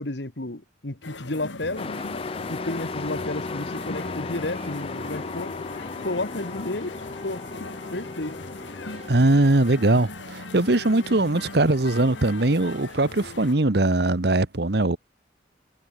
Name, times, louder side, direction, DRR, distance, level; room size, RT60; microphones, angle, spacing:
voice 1, 0.0-1.9 2.5-5.6 6.0-6.9 7.2-7.5 7.9-8.4, left 2 dB, 65° left, 1.8 m, -31 dB
sound 1, 1.0-13.5, left 3 dB, 90° left, 2.3 m, -40 dB
Train, 1.6-13.5, right 3 dB, 35° right, 3.7 m, -51 dB
Truck, 1.8-9.2, left 4 dB, 30° left, 0.4 m, -35 dB
voice 2, 9.1-15.0, right 2 dB, 60° right, 1.2 m, -21 dB
head